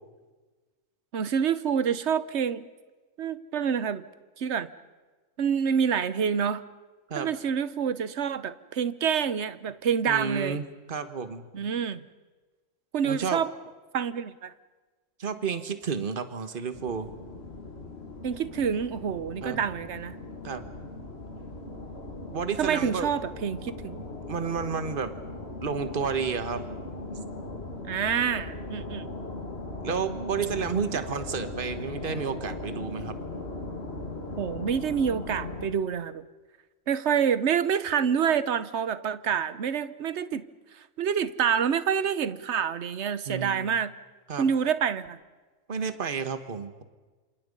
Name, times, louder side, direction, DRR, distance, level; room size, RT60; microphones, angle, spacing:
voice 1, 1.1-2.6 3.2-4.0 4.4-4.7 5.4-6.6 7.2-10.6 11.5-12.0 12.9-13.5 13.9-14.5 18.2-20.2 22.6-24.0 27.8-29.1 29.9-30.0 34.4-36.2 36.9-40.4 41.0-43.9 44.4-45.2, right 7 dB, 60° right, 15 dB, 1.2 m, -27 dB
voice 2, 10.1-11.5 13.0-13.4 15.2-17.1 19.4-19.6 20.4-20.7 22.3-23.1 24.3-25.1 25.6-26.6 29.8-33.2 43.3-43.7 44.3-44.5 45.7-46.8, right 6 dB, 40° right, 10 dB, 1.5 m, -31 dB
sound 1, 16.7-35.7, left 2 dB, 50° left, 2.7 m, -39 dB
27.5 x 27.5 x 5.4 m, 1.3 s
omnidirectional pair, 1.4 m